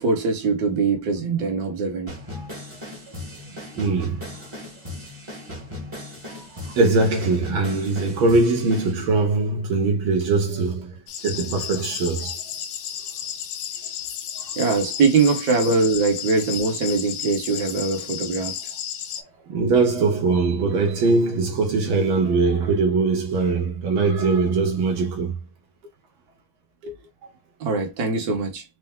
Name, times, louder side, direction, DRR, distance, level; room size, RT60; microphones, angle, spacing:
voice 1, 0.0-2.1 14.6-18.5 26.8-26.9 27.6-28.6, right 4 dB, 50° right, 1.5 m, -22 dB
sound 1, 2.1-8.9, left 2 dB, 20° right, 1.0 m, -37 dB
voice 2, 3.8-4.2 6.8-10.9 11.2-12.3 19.5-25.4, right 3 dB, 75° right, 1.8 m, -21 dB
sound 2, 11.1-19.2, left 9 dB, 75° left, 1.2 m, -33 dB
4.5 x 2.0 x 3.5 m
omnidirectional pair, 2.3 m